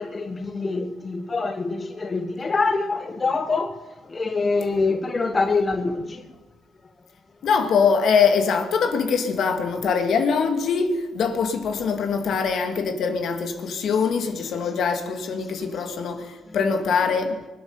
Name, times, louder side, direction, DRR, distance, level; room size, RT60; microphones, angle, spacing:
voice 1, 0.0-3.8 4.1-6.2, left 3 dB, 30° left, 1.1 m, -25 dB
voice 2, 7.4-17.4, left 5 dB, 65° left, 2.2 m, -23 dB
22.0 x 8.3 x 7.1 m
cardioid pair, 90°, 0 cm